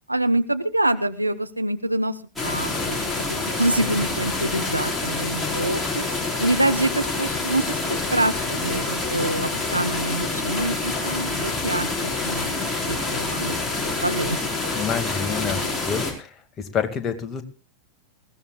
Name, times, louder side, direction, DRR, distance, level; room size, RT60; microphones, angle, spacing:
voice 1, 0.1-2.1 2.4-6.0 6.4-13.5 14.0-14.4, right 1 dB, 85° right, 9 dB, 1.1 m, -26 dB
sound 1, 2.4-16.1, left 3 dB, 5° left, 4.6 m, -27 dB
voice 2, 14.7-17.4, left 7 dB, 25° left, 7 dB, 2.2 m, -28 dB
20.5 x 16.5 x 2.4 m, 0.33 s
figure-of-eight pair, 90°, 0 cm